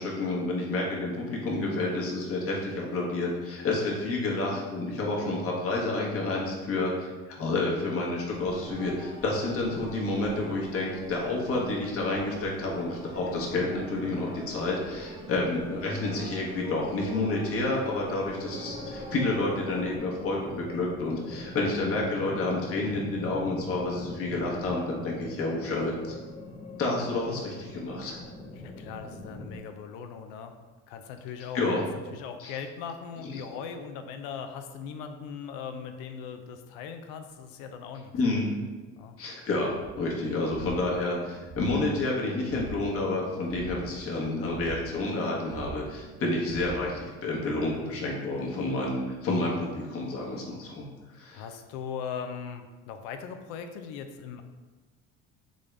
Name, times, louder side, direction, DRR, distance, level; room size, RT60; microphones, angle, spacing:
voice 1, 0.0-26.1 26.8-28.2 31.5-31.8 32.4-32.6 33.2-33.4 38.1-38.5 39.2-50.8 51.1-51.4, left 2 dB, 45° left, -3 dB, 1.2 m, -29 dB
sound 1, 8.3-20.0, right 1 dB, 15° right, 0.8 m, -42 dB
sound 2, 18.7-29.6, left 3 dB, 20° left, 0.6 m, -42 dB
voice 2, 28.6-30.5 30.9-31.6 32.1-38.1 39.0-39.2 51.3-54.4, left 7 dB, 90° left, 7 dB, 0.5 m, -39 dB
sound 3, 39.8-47.2, right 4 dB, 50° right, 0.7 m, -44 dB
3.8 x 3.5 x 3.3 m, 1.3 s
supercardioid pair, 95°, 32 cm